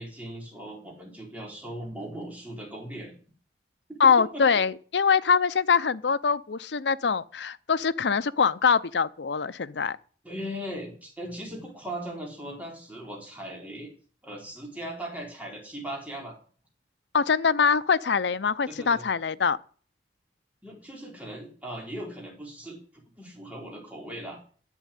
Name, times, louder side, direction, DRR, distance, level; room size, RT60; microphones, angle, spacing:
voice 1, 0.0-3.1 4.3-4.6 10.2-13.9 14.2-16.4 18.7-19.1 20.6-22.8 23.2-24.4, right 1 dB, 10° right, 4.2 m, -38 dB
voice 2, 4.0-10.0 17.1-19.6, left 6 dB, 75° left, 0.6 m, -23 dB
11.0 x 8.2 x 9.4 m
head